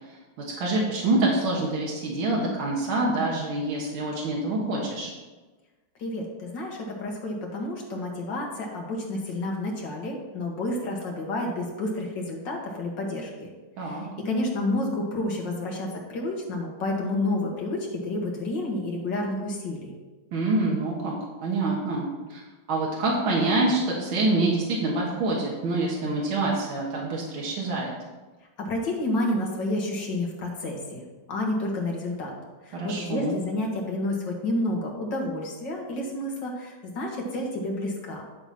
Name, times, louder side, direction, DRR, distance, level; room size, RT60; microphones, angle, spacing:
voice 1, 0.4-5.1 13.8-14.0 20.3-21.2 21.4-22.4 22.7-27.9 32.7-33.4, right 2 dB, 80° right, -3 dB, 2.2 m, -26 dB
voice 2, 6.0-13.5 13.8-19.9 28.6-31.0 31.3-32.3 32.7-38.2, left 1 dB, 60° left, -1 dB, 2.3 m, -30 dB
11.0 x 4.0 x 5.9 m, 1.2 s
omnidirectional pair, 2.2 m